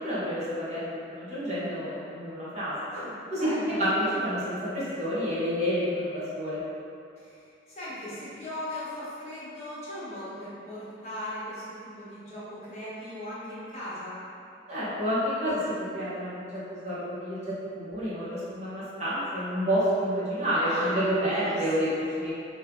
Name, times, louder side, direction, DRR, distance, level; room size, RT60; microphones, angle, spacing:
voice 1, 0.0-2.7 3.3-3.5 3.8-6.6 14.7-21.9 22.2-22.3, equal, 35° right, -11 dB, 1.0 m, -29 dB
voice 2, 2.9-3.8 7.2-14.2 20.6-22.1, left 1 dB, 35° left, -11 dB, 1.4 m, -38 dB
3.4 x 2.7 x 4.6 m, 2.5 s
head